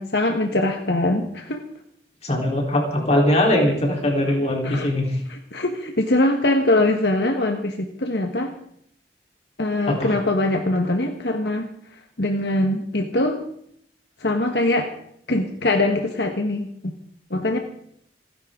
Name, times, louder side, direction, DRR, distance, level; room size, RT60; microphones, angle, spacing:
voice 1, 0.0-1.6 4.6-4.9 5.3-8.5 9.6-11.7 12.2-13.4 14.2-14.9 15.3-16.9 17.3-17.6, left 2 dB, 70° left, 4 dB, 1.5 m, -22 dB
voice 2, 2.2-5.2 9.9-10.1, left 1 dB, 40° left, 0 dB, 4.0 m, -21 dB
28.5 x 11.0 x 3.8 m, 0.68 s
head